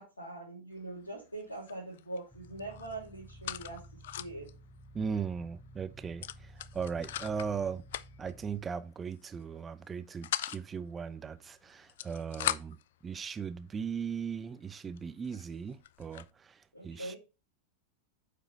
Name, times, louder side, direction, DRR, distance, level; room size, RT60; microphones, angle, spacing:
voice 1, 0.0-4.5 16.7-17.2, right 2 dB, 80° left, 2.5 m, -43 dB
sound 1, 0.8-1.1 1.3-2.2 2.4-4.5 4.9-5.0 5.2-5.4 6.2-7.5 7.9-8.3 9.1-9.4 9.8-10.6 11.7-12.9 13.6-13.7 14.3-14.4 15.0-15.1 15.2-16.3, left 12 dB, 55° left, 0.3 m, -39 dB
sound 2, 2.3-8.6, right 1 dB, 5° left, 3.4 m, -53 dB
voice 2, 4.9-7.8 8.2-12.8 13.0-17.2, right 6 dB, 20° right, 0.6 m, -38 dB
8.8 x 5.1 x 3.2 m
figure-of-eight pair, 90°, 0 cm